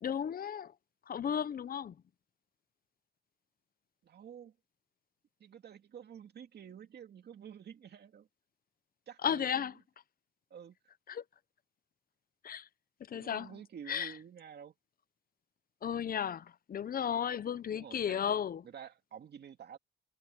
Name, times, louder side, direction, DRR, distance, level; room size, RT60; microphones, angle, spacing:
voice 1, 0.0-0.7 1.1-1.9 9.2-9.7 11.1-11.2 12.4-12.6 13.1-13.5 13.9-14.1 15.8-18.6, left 8 dB, 45° left, 0.9 m, -34 dB
voice 2, 4.0-4.6 5.4-8.3 9.1-9.8 10.5-10.8 13.1-14.7 17.7-18.2 18.6-19.8, right 8 dB, 55° right, 2.3 m, -50 dB
cardioid pair, 90°, 20 cm